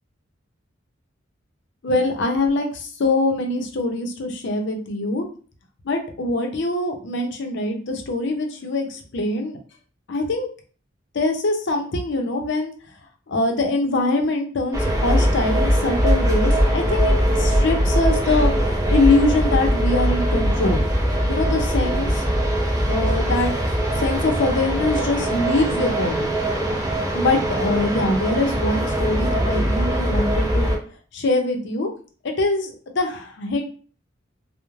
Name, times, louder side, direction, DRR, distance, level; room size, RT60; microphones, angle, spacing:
voice 1, 1.8-5.3 5.8-9.6 10.1-10.5 11.1-12.7 13.3-20.8 21.2-22.2 22.9-23.5 24.0-26.3 27.1-30.7 31.1-31.9 32.2-33.6, left 2 dB, 65° left, 4 dB, 0.6 m, -23 dB
sound 1, 14.7-30.8, equal, 20° right, 0.5 m, -21 dB
3.0 x 2.0 x 2.4 m, 0.40 s
head